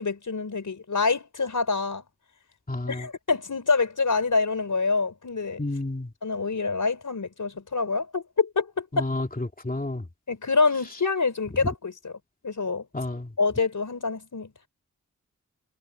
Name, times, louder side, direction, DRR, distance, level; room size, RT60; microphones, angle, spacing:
voice 1, 0.0-2.0 2.9-5.6 6.2-9.1 10.3-12.1 12.4-12.8 13.4-14.5, left 4 dB, 80° left, 4.8 m, -26 dB
voice 2, 2.7-3.0 5.6-6.1 8.9-9.3 9.6-10.0 12.9-13.3, left 2 dB, 30° left, 2.9 m, -30 dB
wide cardioid pair, 90°, 30 cm